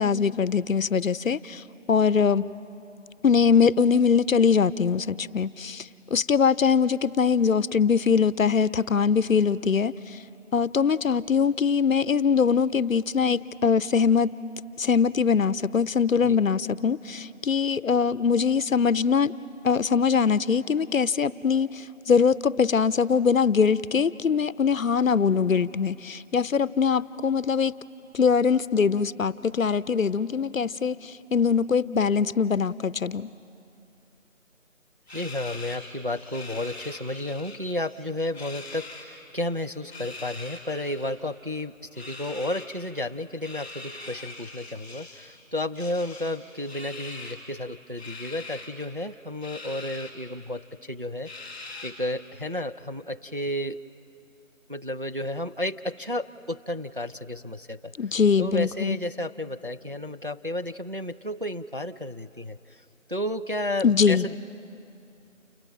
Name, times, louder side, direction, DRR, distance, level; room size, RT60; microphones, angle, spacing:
voice 1, 0.0-2.5 3.2-10.2 10.5-14.3 14.8-19.3 19.6-27.7 28.1-33.3 58.0-59.0 63.8-64.3, left 6 dB, 75° left, 18 dB, 0.6 m, -22 dB
sound 1, 35.1-37.6 37.8-39.1 39.8-41.1 41.9-42.7 43.4-45.3 45.7-47.4 48.0-48.7 49.4-50.1 50.5-50.6 51.2-52.1, left 2 dB, 5° left, 1.8 m, -42 dB
voice 2, 35.1-51.5 51.8-53.8 54.7-57.9 58.4-62.8 63.1-64.4, left 1 dB, 45° right, 8 dB, 0.4 m, -32 dB
29.0 x 18.0 x 5.8 m, 2.7 s
figure-of-eight pair, 165°, 40 cm